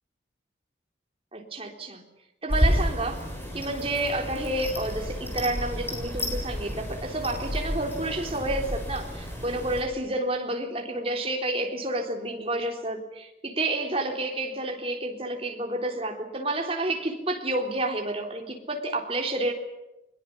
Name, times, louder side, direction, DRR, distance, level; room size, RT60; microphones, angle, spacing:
voice 1, 1.3-2.0 2.4-3.2 3.5-19.5, right 2 dB, 30° right, 3 dB, 3.7 m, -30 dB
sound 1, 2.5-9.8, equal, 10° left, 7.1 m, -30 dB
23.5 x 22.0 x 8.6 m, 0.94 s
head